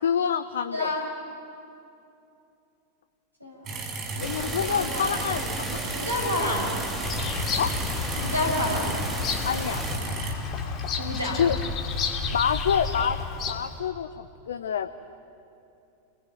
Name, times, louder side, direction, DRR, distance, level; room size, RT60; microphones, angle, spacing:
voice 1, 0.0-0.9 4.2-5.8 7.6-7.7 9.4-9.8 11.4-11.6 12.3-13.2 13.5-14.9, left 7 dB, 65° left, 10 dB, 0.8 m, -27 dB
voice 2, 0.7-1.0 3.4-5.3 5.9-6.7 8.2-8.9 11.0-11.4, left 2 dB, 90° right, -2 dB, 5.8 m, -30 dB
sound 1, 3.6-10.3, right 4 dB, 30° right, 5.0 m, -35 dB
sound 2, 4.2-10.0, right 1 dB, 5° right, 3.9 m, -34 dB
Bird vocalization bird call bird song, 7.0-13.8, left 4 dB, 30° left, 2.7 m, -31 dB
28.5 x 20.5 x 9.1 m, 2.7 s
figure-of-eight pair, 90°, 0 cm